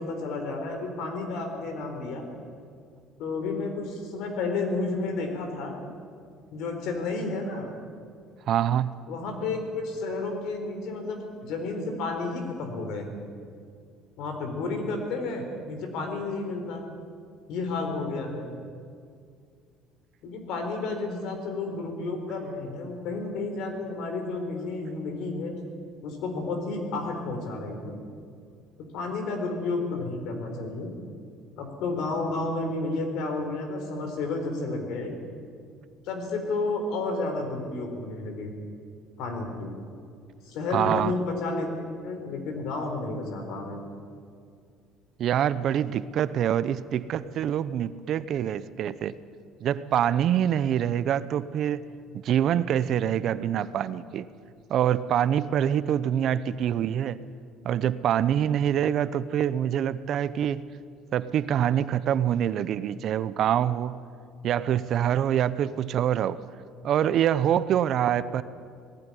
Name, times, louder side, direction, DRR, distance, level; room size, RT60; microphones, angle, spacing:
voice 1, 0.0-2.2 3.2-5.7 6.5-7.7 9.1-13.3 14.2-16.8 17.5-18.5 20.2-25.5 26.0-28.0 28.9-30.9 31.6-35.2 36.0-38.5 39.2-39.7 40.5-43.9, left 3 dB, 70° left, 5 dB, 4.2 m, -31 dB
voice 2, 8.5-8.9 40.7-41.1 45.2-49.2 49.6-51.8 52.1-54.3 54.7-57.2 57.6-60.6 61.1-64.0 64.4-66.4 66.8-68.4, right 10 dB, 50° right, 15 dB, 0.7 m, -25 dB
19.0 x 15.0 x 10.0 m, 2.3 s
cardioid pair, 140°, 0 cm